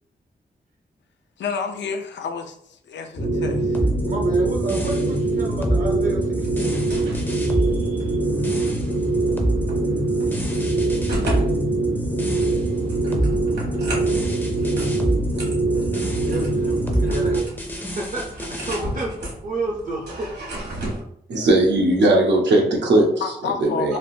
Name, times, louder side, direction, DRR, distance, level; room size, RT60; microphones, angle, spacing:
voice 1, 1.4-3.8 23.2-24.0, left 6 dB, 85° left, 0.4 m, -30 dB
sound 1, 3.2-17.4, right 2 dB, 70° left, 0.9 m, -23 dB
sound 2, 3.7-18.8, right 1 dB, 10° left, 0.4 m, -28 dB
voice 2, 4.1-6.7 16.2-17.5 17.8-20.3 23.9-24.0, right 2 dB, 50° right, 0.5 m, -30 dB
sound 3, 6.4-21.0, right 1 dB, 70° right, 1.2 m, -36 dB
voice 3, 21.3-23.1 23.4-24.0, right 1 dB, 85° right, 0.7 m, -18 dB
3.3 x 2.5 x 2.6 m
wide cardioid pair, 155°, 18 cm